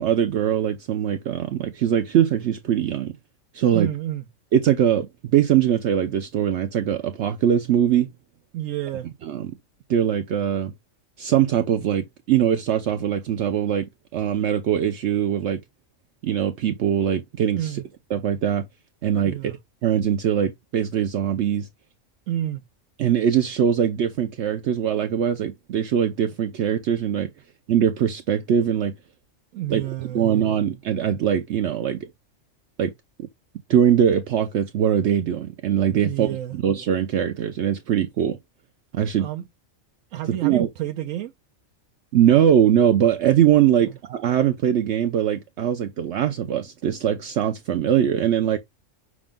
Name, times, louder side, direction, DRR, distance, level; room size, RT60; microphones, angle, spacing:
voice 1, 0.0-3.1 3.5-3.9 4.5-5.1 5.3-8.1 9.2-9.6 9.9-10.7 11.2-13.9 14.1-15.6 16.2-17.8 18.1-18.7 19.0-19.5 19.8-21.7 23.0-27.3 27.7-28.9 29.7-32.1 32.8-32.9 33.2-33.3 33.7-38.4 38.9-39.3 40.3-40.7 42.1-48.6, right 9 dB, 70° right, 0.8 m, -21 dB
voice 2, 3.7-4.2 8.5-9.1 17.5-17.8 19.2-19.6 22.3-22.6 29.5-30.6 36.0-36.6 39.2-39.4 40.1-41.3 43.8-43.9, right 12 dB, 85° right, 1.0 m, -29 dB
6.0 x 2.2 x 3.6 m
omnidirectional pair, 1.3 m